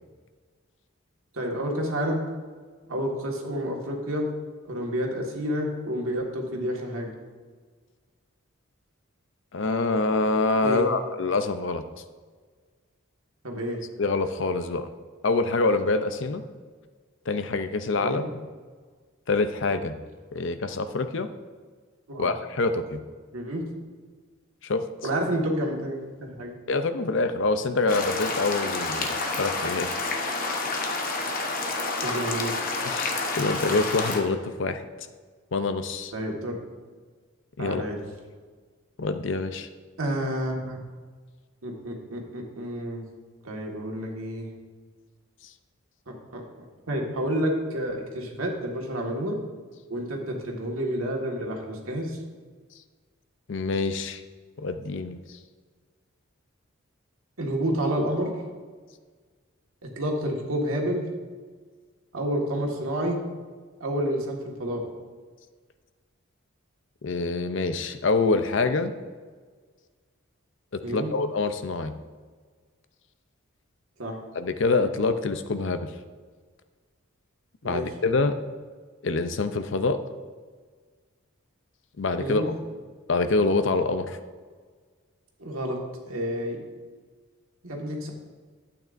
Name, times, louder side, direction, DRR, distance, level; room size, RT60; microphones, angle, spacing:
voice 1, 1.3-2.2 2.9-4.2 4.6-7.1 10.6-10.9 13.4-13.8 18.0-18.2 22.1-22.3 23.3-23.6 25.0-26.6 32.0-32.5 36.1-36.6 37.6-38.0 40.0-40.8 41.6-43.0 43.4-44.5 46.1-46.4 46.9-49.4 49.9-52.2 57.4-58.3 59.8-61.1 62.1-63.2 63.8-64.8 70.8-71.1 74.0-74.1 77.6-77.8 82.2-82.5 85.4-85.8 86.0-86.6 87.6-88.1, equal, 85° right, 0 dB, 1.7 m, -29 dB
voice 2, 9.5-11.8 14.0-14.9 15.2-16.4 17.3-18.2 19.3-19.9 20.3-21.3 22.2-23.0 24.6-24.8 26.7-30.1 32.8-34.8 35.5-36.1 37.6-37.8 39.0-39.7 53.5-54.2 54.6-55.2 67.0-68.9 70.7-71.9 74.3-75.9 77.6-78.4 79.0-80.0 82.0-82.5 83.1-84.2, left 3 dB, 60° left, 9 dB, 0.6 m, -26 dB
sound 1, 27.9-34.2, left 3 dB, 40° left, 0.9 m, -29 dB
12.0 x 8.7 x 2.6 m, 1.5 s
head